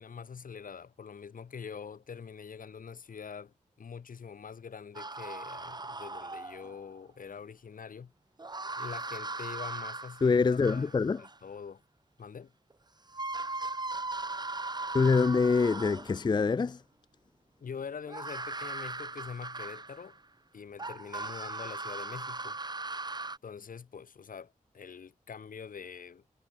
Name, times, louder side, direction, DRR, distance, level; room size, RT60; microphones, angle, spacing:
voice 1, 0.0-8.1 8.8-11.8 12.2-12.5 17.6-20.2 20.5-22.6 23.4-26.3, left 6 dB, 90° left, 3.4 m, -44 dB
sound 1, 4.9-6.8 8.4-11.4 12.7-12.8 13.1-16.3 18.1-20.2 20.8-23.4, right 3 dB, 30° right, 7.3 m, -39 dB
voice 2, 10.2-11.2 14.9-16.8, left 4 dB, 30° left, 0.4 m, -25 dB
wide cardioid pair, 120°, 14 cm